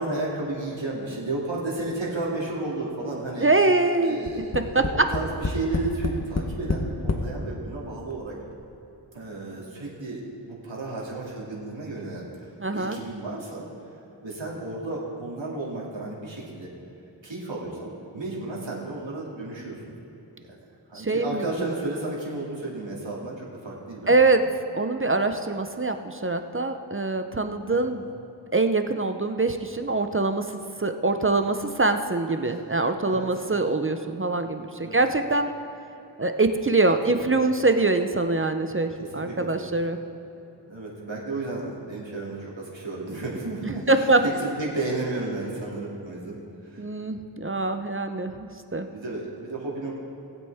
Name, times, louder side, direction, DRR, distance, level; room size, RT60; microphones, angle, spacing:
voice 1, 0.0-3.5 4.0-8.3 9.1-13.7 14.2-16.7 17.2-19.9 20.4-20.5 20.9-24.1 27.7-27.9 32.5-32.6 33.0-33.4 34.8-35.0 37.1-37.3 39.0-39.7 40.7-46.8 48.9-50.0, right 2 dB, 75° right, -4 dB, 2.5 m, -33 dB
voice 2, 3.4-4.2 4.7-5.1 12.6-13.0 20.9-21.4 24.1-24.5 24.7-28.0 28.5-35.5 36.2-40.0 43.9-44.2 46.8-48.9, right 3 dB, 30° right, 7 dB, 0.6 m, -24 dB
Tap, 4.3-7.3 8.1-8.2 8.5-8.6, left 3 dB, 35° left, 0.9 m, -28 dB
19.0 x 8.2 x 3.5 m, 3.0 s
wide cardioid pair, 65°, 46 cm